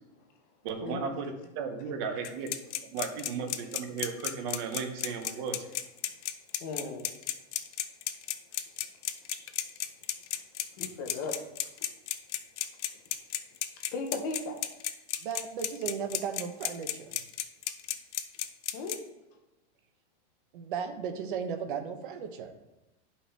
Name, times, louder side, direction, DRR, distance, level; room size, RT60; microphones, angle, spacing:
voice 1, 0.6-2.5 2.8-5.6, right 5 dB, 25° right, 6 dB, 0.6 m, -35 dB
sound 1, 2.2-18.9, left 12 dB, 85° left, 0.8 m, -32 dB
voice 2, 6.6-7.1 8.5-8.6 10.8-11.4 13.9-14.6 18.7-19.0, left 3 dB, 20° left, 3 dB, 0.4 m, -36 dB
voice 3, 15.2-16.9 20.5-22.5, right 7 dB, 50° right, 7 dB, 0.9 m, -35 dB
11.0 x 5.5 x 3.3 m, 1.0 s
supercardioid pair, 180°, 34 cm